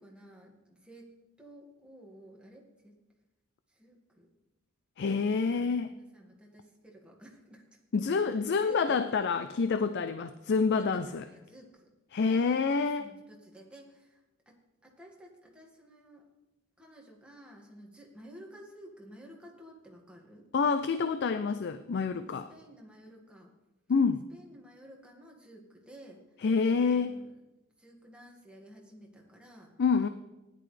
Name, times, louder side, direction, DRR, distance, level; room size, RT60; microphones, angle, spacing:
voice 1, 0.0-3.0 3.7-4.3 5.7-7.6 8.2-9.7 10.6-11.9 12.3-16.2 16.8-20.5 22.0-23.5 24.3-26.2 26.7-27.4 27.8-29.7, equal, 5° right, -1 dB, 1.9 m, -53 dB
voice 2, 5.0-5.9 7.9-11.2 12.1-13.1 20.5-22.5 23.9-24.2 26.4-27.2 29.8-30.1, left 5 dB, 55° left, 10 dB, 0.4 m, -27 dB
16.0 x 10.5 x 3.3 m, 1.0 s
head